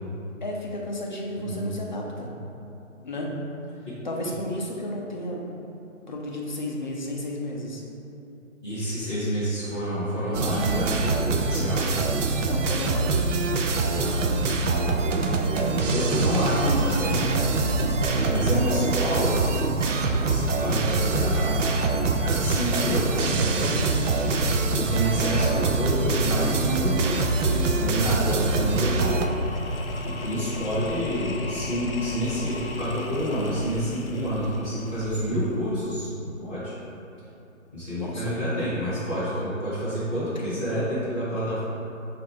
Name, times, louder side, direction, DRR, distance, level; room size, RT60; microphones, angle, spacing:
voice 1, 0.4-2.3 3.0-3.3 4.0-5.4 6.1-7.8 12.3-13.2 38.0-38.4, left 1 dB, 35° left, -2 dB, 0.5 m, -32 dB
voice 2, 1.4-1.7 3.8-4.0 8.6-11.8 13.9-14.9 15.9-17.3 18.2-19.3 20.1-21.8 22.2-23.8 24.7-29.2 30.0-36.8 37.7-41.6, equal, 10° right, -16 dB, 0.9 m, -28 dB
sound 1, 10.3-29.3, right 3 dB, 65° right, 0.5 m, -24 dB
sound 2, 14.6-32.7, left 1 dB, 50° left, 0.9 m, -38 dB
sound 3, 27.5-36.2, left 3 dB, 85° left, 0.7 m, -38 dB
4.0 x 2.5 x 4.8 m, 2.8 s
hypercardioid pair, 160°, 41 cm